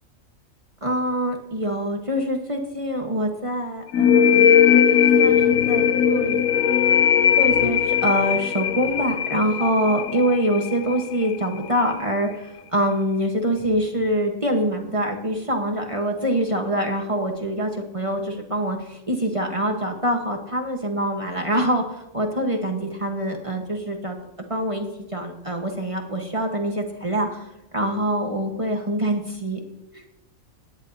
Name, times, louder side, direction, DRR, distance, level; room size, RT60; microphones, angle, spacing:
voice 1, 0.8-6.4 7.4-24.2 24.5-27.5 27.7-29.6 29.9-30.0, equal, 25° right, 2 dB, 1.3 m, -25 dB
sound 1, 3.9-11.4, left 8 dB, 85° left, 1.0 m, -19 dB
17.0 x 11.0 x 2.8 m, 0.86 s
omnidirectional pair, 1.4 m